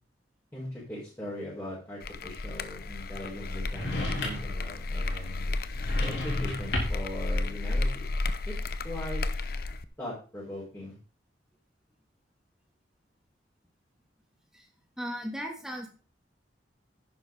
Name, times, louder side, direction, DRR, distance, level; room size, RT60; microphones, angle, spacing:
voice 1, 0.5-5.6 6.0-8.1 8.4-8.5 8.8-9.2 10.0-11.0, left 1 dB, 15° left, -8 dB, 4.9 m, -40 dB
sound 1, 2.0-9.8, left 2 dB, 55° left, 0.7 m, -32 dB
sound 2, 3.7-4.6 5.7-7.1, left 1 dB, 75° left, 3.9 m, -33 dB
voice 2, 15.0-15.9, equal, 5° right, 0 dB, 2.8 m, -36 dB
10.5 x 9.6 x 4.0 m, 0.37 s
head